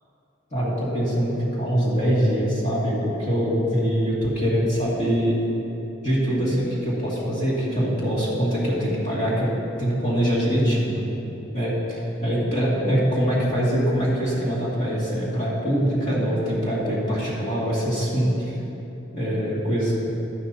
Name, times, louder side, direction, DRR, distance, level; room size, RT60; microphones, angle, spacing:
voice 1, 0.5-5.4 6.0-9.5 9.8-11.0 11.5-18.6 19.1-19.9, equal, 40° left, -7 dB, 2.3 m, -23 dB
12.5 x 11.0 x 2.8 m, 3.0 s
head